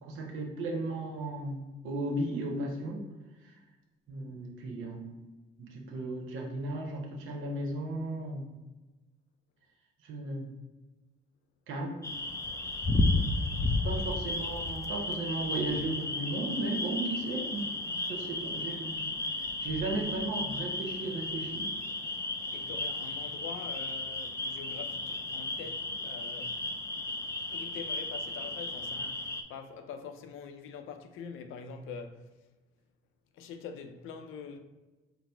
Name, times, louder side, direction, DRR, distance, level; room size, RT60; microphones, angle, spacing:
voice 1, 0.0-3.1 4.1-5.2 5.6-8.5 10.0-10.5 11.7-12.0 13.3-13.4 13.8-19.1 19.6-21.7, right 2 dB, 90° right, 0.8 m, -35 dB
sound 1, 12.0-29.4, left 2 dB, 15° left, 0.4 m, -33 dB
voice 2, 12.9-13.3 14.0-14.1 22.5-26.6 27.5-32.3 33.3-34.6, left 6 dB, 90° left, 0.5 m, -45 dB
4.0 x 2.1 x 4.4 m
cardioid pair, 90°, 20 cm